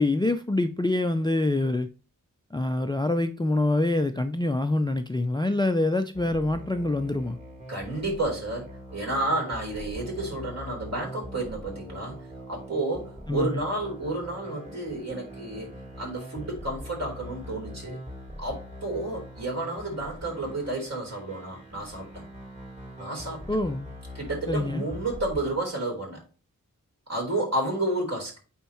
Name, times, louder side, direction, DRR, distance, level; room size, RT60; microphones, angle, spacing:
voice 1, 0.0-1.9 2.5-7.4 13.3-13.6 23.5-23.9 24.5-24.8, left 2 dB, 15° left, 0.4 m, -25 dB
sound 1, 6.1-25.6, equal, 20° right, 2.8 m, -42 dB
voice 2, 7.7-12.2 12.5-15.7 16.0-18.0 18.4-22.2 23.0-23.4 24.1-26.2 27.1-28.4, right 2 dB, 50° right, 4.0 m, -31 dB
9.0 x 4.3 x 3.0 m
wide cardioid pair, 100°, 34 cm